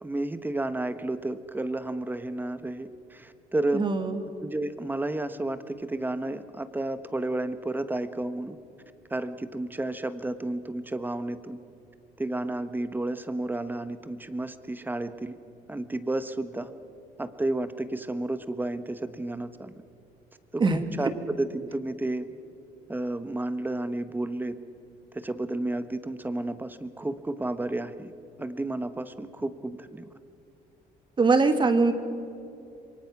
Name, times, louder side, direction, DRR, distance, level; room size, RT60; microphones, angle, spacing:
voice 1, 0.0-3.9 4.4-8.6 9.1-11.6 12.2-15.4 15.7-16.7 17.2-19.7 20.5-22.3 22.9-24.6 25.1-28.1 28.4-30.1, right 2 dB, 10° right, 11 dB, 1.2 m, -31 dB
voice 2, 3.7-4.2 20.6-20.8 31.2-32.0, right 3 dB, 30° right, 7 dB, 2.0 m, -22 dB
27.0 x 23.0 x 6.0 m, 2.6 s
cardioid pair, 110°, 17 cm